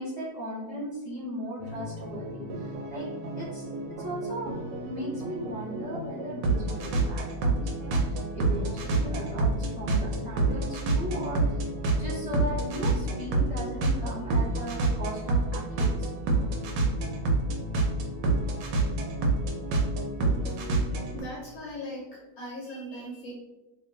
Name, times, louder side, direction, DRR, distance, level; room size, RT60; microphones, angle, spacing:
voice 1, 0.0-3.7 4.0-4.5 4.8-11.6 11.9-16.3, right 1 dB, 30° left, -6 dB, 0.7 m, -37 dB
sound 1, 1.6-21.2, right 2 dB, 90° right, 1.3 m, -28 dB
voice 2, 20.2-20.7 21.1-22.0 22.4-23.3, equal, 65° left, -4 dB, 1.1 m, -39 dB
2.9 x 2.5 x 3.7 m, 1.1 s
omnidirectional pair, 1.9 m